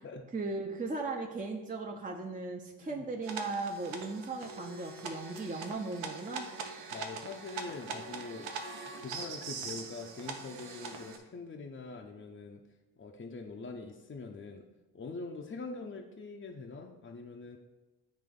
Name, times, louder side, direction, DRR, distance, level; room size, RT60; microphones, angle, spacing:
voice 1, 0.3-6.5, right 3 dB, 20° right, 2 dB, 0.6 m, -37 dB
sound 1, 3.2-11.2, right 4 dB, 85° right, 0.7 m, -42 dB
voice 2, 6.9-8.5 9.0-12.6 13.0-14.7 14.9-17.6, left 3 dB, 25° left, 1 dB, 0.6 m, -43 dB
8.6 x 3.0 x 3.7 m, 1.1 s
supercardioid pair, 45°, 46 cm